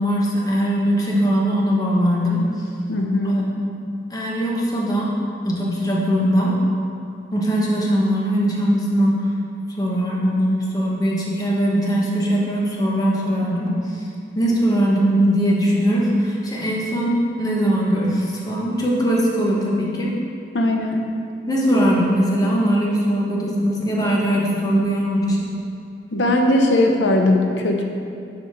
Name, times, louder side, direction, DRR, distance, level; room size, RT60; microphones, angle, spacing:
voice 1, 0.0-2.4 3.2-3.7 4.1-5.1 5.4-6.5 7.3-9.3 9.8-14.0 14.3-20.1 21.5-25.5, equal, 20° left, -4 dB, 1.3 m, -20 dB
voice 2, 2.9-3.4 20.5-21.1 26.1-27.8, left 1 dB, 85° left, 2 dB, 0.7 m, -19 dB
7.1 x 5.3 x 6.0 m, 2.5 s
head